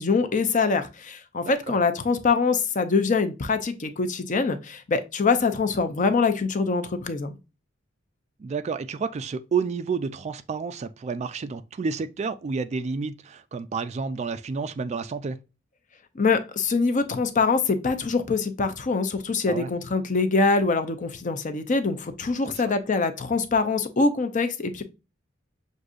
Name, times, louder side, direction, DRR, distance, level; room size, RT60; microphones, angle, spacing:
voice 1, 0.0-7.3 16.2-24.8, left 4 dB, 40° left, 0.5 m, -24 dB
voice 2, 1.4-1.8 8.4-15.4 19.5-19.7 22.5-22.7, right 5 dB, 35° right, 0.3 m, -30 dB
6.3 x 2.7 x 2.4 m
head